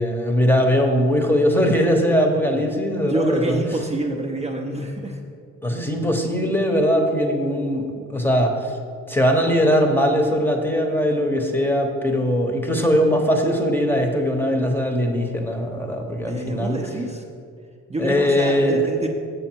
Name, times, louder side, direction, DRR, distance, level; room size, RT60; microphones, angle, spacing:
voice 1, 0.0-3.6 5.6-8.7 9.1-16.8 18.0-18.8, equal, 5° left, 3 dB, 0.9 m, -20 dB
voice 2, 3.1-5.2 16.2-17.2 17.9-19.1, right 2 dB, 20° right, 0 dB, 0.7 m, -27 dB
6.7 x 6.5 x 4.5 m, 2.3 s
cardioid pair, 90°, 30 cm